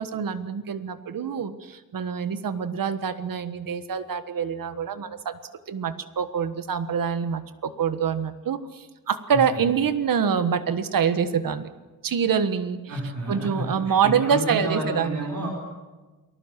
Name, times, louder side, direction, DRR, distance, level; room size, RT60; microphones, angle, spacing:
voice 1, 0.0-5.4 5.7-11.7 12.0-12.8 13.3-15.2, right 7 dB, 80° right, 11 dB, 1.5 m, -25 dB
voice 2, 9.3-9.6 12.9-15.5, right 2 dB, 60° right, -3 dB, 4.6 m, -30 dB
28.5 x 20.0 x 7.5 m, 1.2 s
wide cardioid pair, 180°, 33 cm